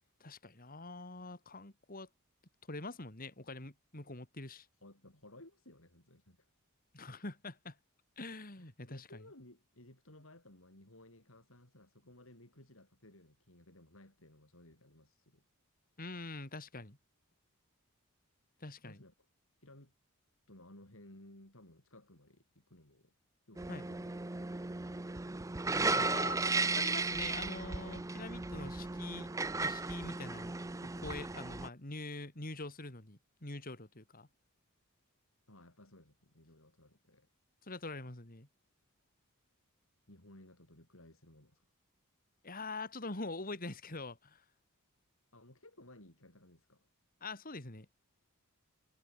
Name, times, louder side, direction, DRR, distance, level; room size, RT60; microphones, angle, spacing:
voice 1, 0.2-2.1 2.7-4.7 6.9-7.8 8.2-9.2 16.0-17.0 18.6-19.0 23.7-23.9 25.9-29.3 29.6-30.6 30.8-34.3 37.6-38.5 42.4-44.4 47.2-47.9, left 3 dB, 40° left, 3.3 m, -44 dB
voice 2, 4.8-6.5 8.6-15.5 18.8-19.1 19.6-19.9 20.5-23.1 23.5-24.2 35.5-37.3 40.1-41.7 45.3-46.8, left 1 dB, 65° left, 6.3 m, -58 dB
sound 1, 23.6-31.7, right 3 dB, 15° right, 0.5 m, -35 dB
head